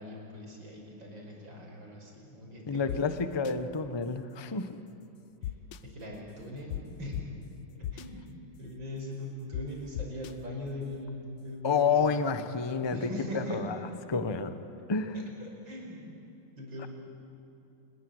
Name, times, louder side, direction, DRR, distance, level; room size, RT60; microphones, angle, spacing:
voice 1, 0.0-3.4 5.4-5.5 5.8-7.2 7.7-12.2 12.9-13.6 15.1-16.1 16.6-16.9, left 1 dB, 65° right, 0 dB, 6.0 m, -41 dB
voice 2, 2.7-4.8 11.6-13.1 13.3-13.7 14.1-14.6 14.9-15.2, left 5 dB, 20° left, 9 dB, 0.7 m, -29 dB
sound 1, 2.9-3.0 3.4-3.5 5.4-5.8 6.7-6.8 7.1-7.2 7.8-8.1 9.5-9.6 10.0-10.3, left 13 dB, 70° left, 1.3 m, -35 dB
28.5 x 21.0 x 7.9 m, 3.0 s
omnidirectional pair, 2.2 m